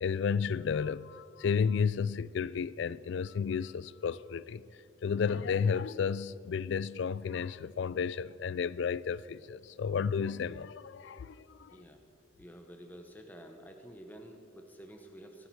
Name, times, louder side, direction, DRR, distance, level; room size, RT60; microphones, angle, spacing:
voice 1, 0.0-4.6 5.0-11.8, left 6 dB, 60° left, 0.3 m, -32 dB
voice 2, 11.7-12.0 12.4-15.5, equal, 10° left, 0.9 m, -50 dB
17.0 x 13.5 x 4.7 m
head